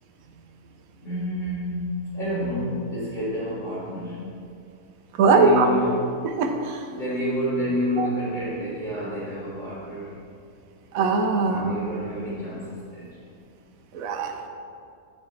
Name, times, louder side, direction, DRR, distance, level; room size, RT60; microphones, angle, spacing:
voice 1, 1.0-4.3 5.3-6.0 6.9-10.2 11.4-13.2, equal, 40° left, -12 dB, 2.2 m, -29 dB
voice 2, 5.2-5.7 6.2-6.8 8.0-8.1 10.9-11.7 13.9-14.5, right 4 dB, 75° right, 3 dB, 1.1 m, -21 dB
10.5 x 4.3 x 4.1 m, 2.3 s
omnidirectional pair, 1.5 m